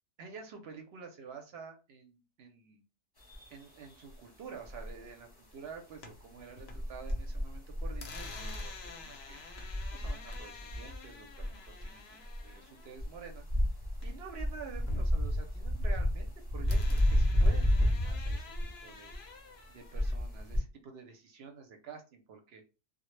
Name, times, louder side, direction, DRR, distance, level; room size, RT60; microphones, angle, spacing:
voice 1, 0.2-2.8 3.5-9.4 9.9-12.2 12.4-13.4 14.0-16.3 16.5-18.4 18.8-19.1 19.7-22.6, right 6 dB, 65° right, 4 dB, 0.7 m, -49 dB
sound 1, 3.2-3.9 4.6-4.9 6.7-9.0 9.3-11.1 11.4-11.9 12.2-12.5 13.0-18.7 19.1-19.3 19.9-20.6, equal, 25° left, 0.6 m, -31 dB
sound 2, 5.7-7.1 7.4-14.4 14.7-16.3 16.7-20.2, left 4 dB, 60° left, 0.7 m, -50 dB
2.1 x 2.1 x 3.0 m, 0.31 s
omnidirectional pair, 1.3 m